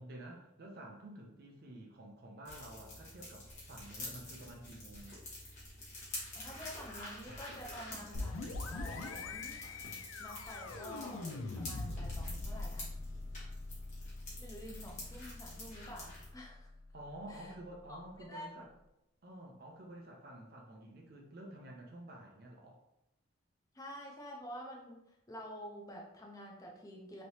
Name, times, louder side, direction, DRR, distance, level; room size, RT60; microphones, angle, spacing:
voice 1, 0.0-5.2 16.9-18.7 19.2-22.8, right 1 dB, 50° right, 0 dB, 0.5 m, -50 dB
sound 1, 2.4-16.3, left 1 dB, 35° left, 1.1 m, -48 dB
voice 2, 6.3-9.6 10.2-11.3 11.6-12.9 14.4-16.7 17.3-17.5 17.9-18.0 18.3-18.5 23.7-27.2, equal, 15° left, -1 dB, 0.5 m, -49 dB
sound 2, 7.3-10.3 10.7-12.1, left 1 dB, 85° left, 0.8 m, -56 dB
sound 3, 8.1-17.7, left 2 dB, 70° left, 0.4 m, -43 dB
3.2 x 2.8 x 2.7 m, 0.84 s
head